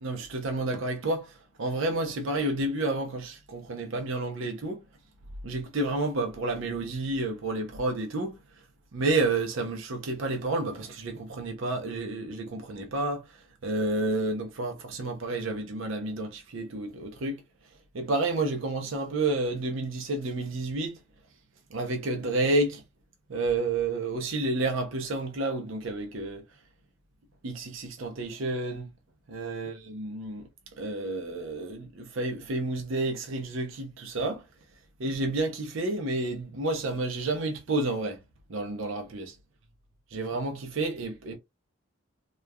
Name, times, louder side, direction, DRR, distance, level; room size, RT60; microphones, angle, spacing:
voice 1, 0.0-4.8 5.4-8.6 8.9-17.4 17.9-21.0 21.7-22.8 23.3-26.4 27.4-28.9 29.3-30.5 30.8-34.5 35.0-38.2 38.5-39.4 40.1-41.4, right 2 dB, 70° right, 0.6 m, -30 dB
3.0 x 2.2 x 2.2 m
head